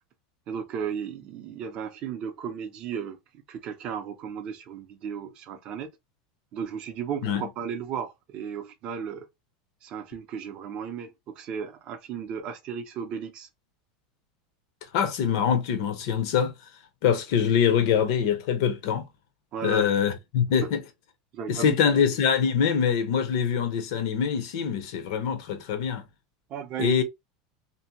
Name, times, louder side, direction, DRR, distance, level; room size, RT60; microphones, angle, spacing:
voice 1, 0.5-3.2 3.5-5.9 6.5-9.3 9.8-13.5 19.5-19.9 20.6-20.7 21.3-22.0 26.5-27.0, right 7 dB, 30° right, 0.4 m, -35 dB
voice 2, 14.9-16.5 17.0-19.1 19.6-20.8 21.5-26.0 26.8-27.0, left 7 dB, 55° left, 0.6 m, -24 dB
2.6 x 2.1 x 2.7 m
supercardioid pair, 175°, 3 cm